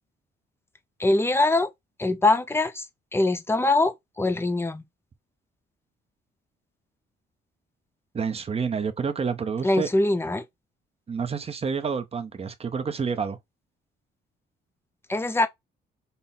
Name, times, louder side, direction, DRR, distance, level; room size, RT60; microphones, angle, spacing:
voice 1, 1.0-1.7 2.0-2.8 3.1-4.8 9.6-10.4 15.1-15.5, left 2 dB, 10° left, 0.6 m, -23 dB
voice 2, 8.1-9.9 11.1-13.4, right 6 dB, 30° right, 0.7 m, -29 dB
5.4 x 2.1 x 4.1 m
cardioid pair, 115°, 21 cm